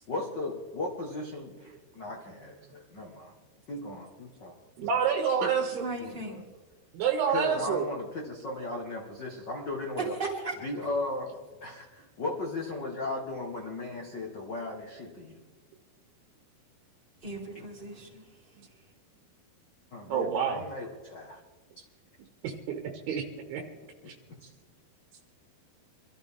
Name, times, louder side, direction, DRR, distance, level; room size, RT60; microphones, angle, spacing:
voice 1, 0.1-3.3 3.7-4.5 5.4-5.5 6.0-6.4 7.3-10.1 10.6-15.4 17.5-17.7 19.9-21.4 24.4-24.5, left 2 dB, 85° left, 0 dB, 0.9 m, -36 dB
voice 2, 4.8-5.8 6.9-7.9 20.1-20.6 22.4-23.6 24.1-24.2, right 7 dB, 75° right, 4 dB, 3.0 m, -28 dB
voice 3, 5.8-6.4 10.1-10.8 17.2-18.4, right 3 dB, 15° right, -2 dB, 2.5 m, -37 dB
25.0 x 13.0 x 3.7 m, 1.3 s
omnidirectional pair, 4.7 m